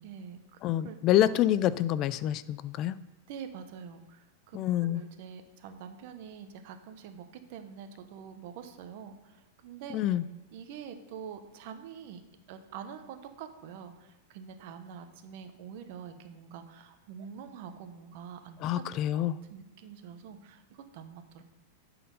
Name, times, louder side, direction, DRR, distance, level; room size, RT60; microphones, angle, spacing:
voice 1, 0.0-1.0 1.2-1.4 3.3-10.0 10.5-12.2 12.5-18.6 19.5-21.4, right 7 dB, 55° right, 8 dB, 1.0 m, -46 dB
voice 2, 0.6-3.0 4.5-5.0 9.9-10.2 18.6-19.4, left 12 dB, 40° left, 17 dB, 0.3 m, -27 dB
11.0 x 4.3 x 5.4 m, 1.1 s
supercardioid pair, 135°, 0 cm